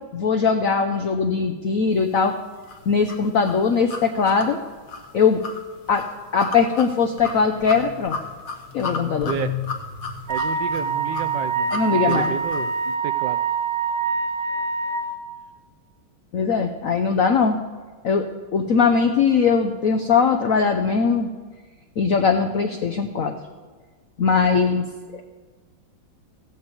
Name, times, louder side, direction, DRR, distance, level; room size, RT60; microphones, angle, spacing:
voice 1, 0.1-2.3 2.9-4.6 5.1-5.4 5.9-6.1 6.3-8.2 8.7-9.3 11.7-12.3 16.3-17.6 18.0-21.3 22.0-23.3 24.2-25.2, left 5 dB, 70° left, 5 dB, 0.7 m, -20 dB
sound 1, 2.7-12.7, left 5 dB, 50° left, 1.3 m, -33 dB
Wind instrument woodwind instrument, 10.3-15.1, right 5 dB, 45° right, 1.6 m, -25 dB
voice 2, 10.3-13.4 24.7-24.8, right 9 dB, 75° right, 10 dB, 1.0 m, -31 dB
15.0 x 5.3 x 8.0 m, 1.4 s
omnidirectional pair, 2.3 m